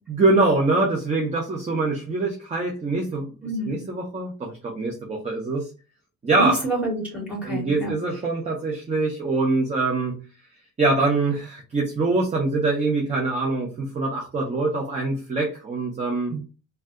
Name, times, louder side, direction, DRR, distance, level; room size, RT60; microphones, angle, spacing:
voice 1, 0.1-3.3 3.6-5.7 6.2-6.7 7.4-10.1 10.8-16.3, right 3 dB, 20° right, 0 dB, 0.4 m, -24 dB
voice 2, 3.4-3.8 6.4-7.9 16.3-16.4, right 2 dB, 5° right, -4 dB, 1.4 m, -28 dB
2.6 x 2.2 x 3.4 m, 0.32 s
wide cardioid pair, 180°, 34 cm